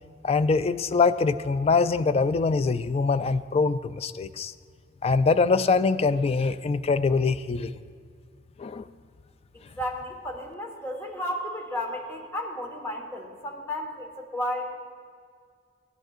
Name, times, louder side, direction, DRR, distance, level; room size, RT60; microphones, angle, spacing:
voice 1, 0.2-4.5 5.0-7.7 8.6-8.8, left 4 dB, 35° left, 12 dB, 0.3 m, -23 dB
voice 2, 9.5-14.7, left 1 dB, 15° left, 0 dB, 1.4 m, -33 dB
15.5 x 10.5 x 2.5 m, 2.1 s
head